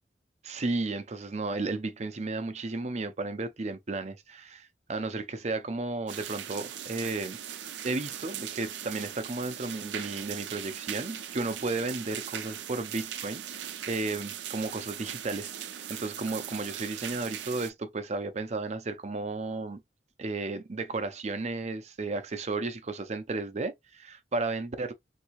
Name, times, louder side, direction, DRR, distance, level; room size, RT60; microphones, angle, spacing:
voice 1, 0.4-19.8 20.2-24.9, right 3 dB, 40° right, 0.6 m, -34 dB
sound 1, 6.1-17.7, right 10 dB, 90° right, 0.5 m, -39 dB
3.5 x 2.7 x 3.0 m
head